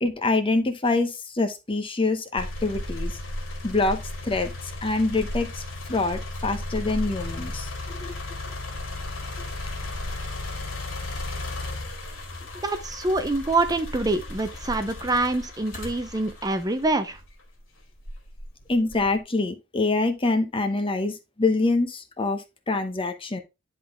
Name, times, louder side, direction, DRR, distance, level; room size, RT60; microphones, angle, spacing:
voice 1, 0.0-3.2 3.6-5.6 5.9-8.1 18.7-23.4, left 3 dB, 25° left, 0.8 m, -25 dB
sound 1, 2.4-17.4 18.0-19.2, left 1 dB, 80° left, 2.1 m, -35 dB
voice 2, 12.6-17.2, right 2 dB, 20° right, 0.6 m, -25 dB
10.0 x 3.9 x 3.5 m
head